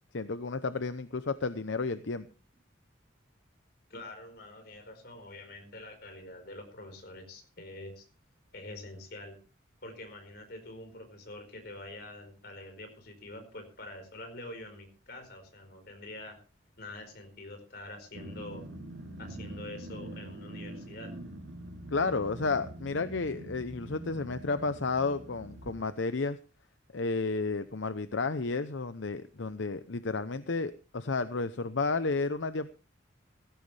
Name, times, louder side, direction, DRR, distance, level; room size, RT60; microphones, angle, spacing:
voice 1, 0.1-2.3 21.9-26.4 26.9-32.7, left 3 dB, 75° left, 12 dB, 0.8 m, -32 dB
voice 2, 3.9-8.1 8.5-9.4 9.8-16.4 16.8-18.7 19.2-21.1, left 2 dB, 55° left, 5 dB, 4.8 m, -46 dB
Growling, 18.1-25.8, right 1 dB, 70° right, 2.7 m, -44 dB
17.0 x 15.0 x 3.4 m, 0.35 s
head